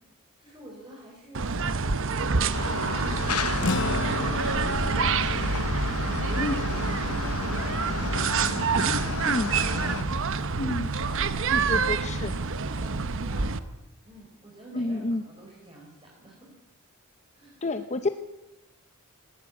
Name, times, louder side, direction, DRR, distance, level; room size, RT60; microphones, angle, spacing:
voice 1, 0.4-5.4 5.7-9.2 9.6-10.2 10.9-13.6 14.0-16.6 17.3-17.6, right 1 dB, 25° right, -2 dB, 4.7 m, -48 dB
sound 1, 1.3-13.6, right 4 dB, 60° right, 1.0 m, -27 dB
sound 2, 2.5-10.0, left 4 dB, 85° left, 1.1 m, -33 dB
sound 3, 3.6-8.3, left 3 dB, 55° left, 1.0 m, -35 dB
voice 2, 10.6-10.9 11.5-12.3 14.7-15.2 17.6-18.1, left 2 dB, 30° left, 9 dB, 0.8 m, -29 dB
19.5 x 16.0 x 8.5 m, 1.0 s
head